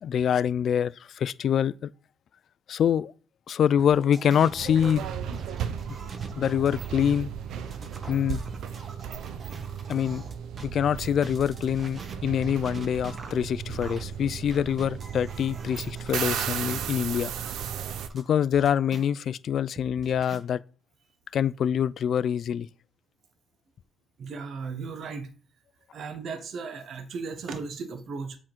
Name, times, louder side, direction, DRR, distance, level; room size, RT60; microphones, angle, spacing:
voice 1, 0.0-1.9 2.7-3.1 3.5-5.4 6.4-7.3 8.1-8.4 9.9-10.2 10.6-17.3 18.1-20.6 21.3-22.7, left 9 dB, 65° left, 0.3 m, -25 dB
sound 1, 3.8-10.7 11.1-19.0 19.5-20.4, right 3 dB, 40° right, 1.2 m, -45 dB
sound 2, 4.6-18.1, right 8 dB, 85° right, 0.6 m, -35 dB
voice 2, 24.2-25.3 25.9-28.4, right 4 dB, 65° right, 1.0 m, -36 dB
7.7 x 3.7 x 4.4 m
cardioid pair, 90°, 0 cm